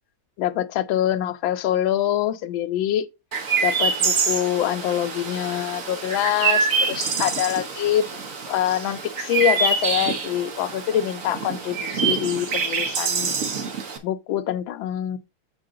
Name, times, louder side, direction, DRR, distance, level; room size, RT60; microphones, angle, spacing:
voice 1, 0.4-3.1 3.6-8.1 8.5-13.3 14.0-15.2, left 11 dB, 80° left, 1.4 m, -25 dB
Chirp tweet, 3.3-14.0, right 5 dB, 45° right, 1.4 m, -26 dB
7.6 x 5.4 x 3.8 m
omnidirectional pair, 2.1 m